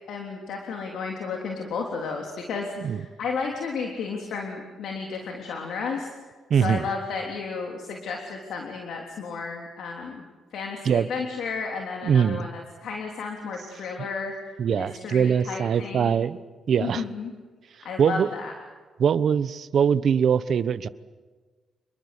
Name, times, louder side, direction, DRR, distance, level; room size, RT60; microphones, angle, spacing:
voice 1, 0.1-10.2 10.5-14.3 14.7-16.1 16.8-17.3 17.8-18.5, left 5 dB, 75° left, 1 dB, 3.4 m, -33 dB
voice 2, 6.5-6.9 10.8-11.1 12.0-12.5 14.6-16.4 16.7-17.0 18.0-18.3 19.0-20.9, right 7 dB, 60° right, 15 dB, 1.0 m, -22 dB
28.0 x 22.0 x 8.3 m, 1.4 s
cardioid pair, 95°, 0 cm